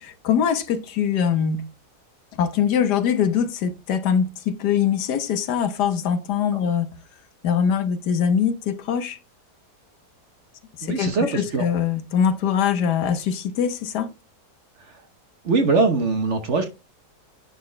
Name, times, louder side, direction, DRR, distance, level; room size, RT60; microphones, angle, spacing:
voice 1, 0.0-1.6 2.4-6.9 7.4-9.2 10.8-14.1, left 8 dB, 75° left, 1.3 m, -23 dB
voice 2, 10.8-11.7 15.4-16.7, right 3 dB, 50° right, 1.1 m, -21 dB
10.5 x 4.0 x 3.2 m
omnidirectional pair, 1.8 m